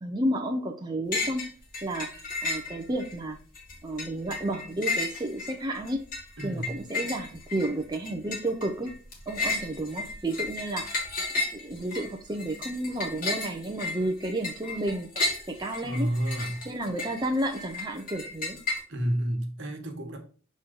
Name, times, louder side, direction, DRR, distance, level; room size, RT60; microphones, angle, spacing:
voice 1, 0.0-1.5 1.8-2.1 2.4-3.4 3.8-6.0 6.4-8.9 9.3-11.1 11.5-16.1 16.7-18.6, right 1 dB, 20° right, 2 dB, 0.5 m, -31 dB
sound 1, 1.1-1.5 1.7-3.1 3.5-18.8, left 3 dB, 40° left, 1.7 m, -33 dB
voice 2, 6.4-6.8 15.8-16.6 18.9-20.2, equal, 60° right, 3 dB, 1.3 m, -30 dB
6.1 x 3.8 x 4.1 m, 0.39 s
head